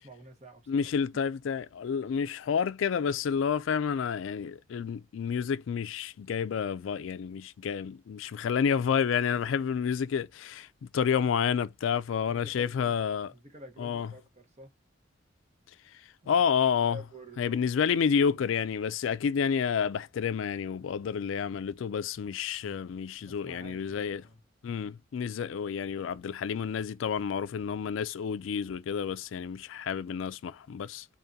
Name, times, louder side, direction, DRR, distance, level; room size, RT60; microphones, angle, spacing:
voice 1, 0.0-0.8 12.2-13.0 13.3-14.7 16.2-16.4 16.9-17.6 23.2-24.4, right 1 dB, 35° right, 1.1 m, -50 dB
voice 2, 0.7-10.7 10.9-13.3 13.8-14.1 15.9-16.0 16.3-17.0 17.4-24.2 24.6-31.1, left 7 dB, 70° left, 0.3 m, -29 dB
3.7 x 3.5 x 2.6 m
head